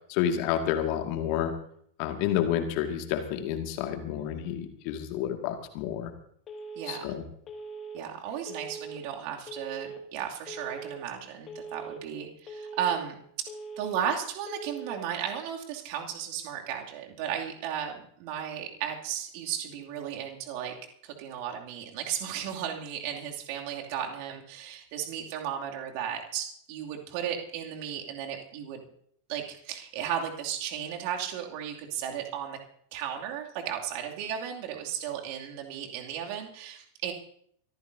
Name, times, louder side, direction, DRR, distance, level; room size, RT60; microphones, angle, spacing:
voice 1, 0.1-1.5 2.0-6.1 6.9-7.2, left 10 dB, 45° left, 5 dB, 2.0 m, -29 dB
Telephone, 6.5-7.0 7.5-8.0 8.5-9.0 9.5-10.0 10.5-11.0 11.5-12.0 12.5-13.0 13.5-14.0 14.5-15.0, right 3 dB, 25° left, 2.1 m, -41 dB
voice 2, 6.7-7.1 7.9-13.5 13.8-20.7 21.0-28.8 29.3-32.6 32.9-37.1, right 9 dB, 45° right, 1 dB, 2.6 m, -35 dB
24.0 x 15.0 x 2.7 m, 0.65 s
figure-of-eight pair, 90°, 0 cm